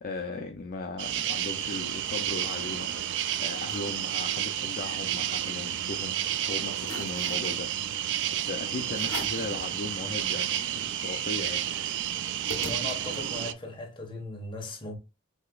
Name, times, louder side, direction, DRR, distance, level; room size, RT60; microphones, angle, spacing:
voice 1, 0.0-6.2 6.5-7.7 8.3-11.6, left 3 dB, 45° left, 0.5 m, -37 dB
sound 1, 1.0-13.5, right 11 dB, 60° right, 0.4 m, -31 dB
sound 2, 2.0-2.8 3.3-3.4 3.6-3.9 4.3-5.9 6.3-6.4 6.8-7.5 8.2-8.4 8.9-9.5 10.0-10.1 10.3-13.3, left 3 dB, 70° left, 1.1 m, -44 dB
voice 2, 12.6-15.0, left 2 dB, 25° left, 1.3 m, -38 dB
6.5 x 2.9 x 2.3 m
head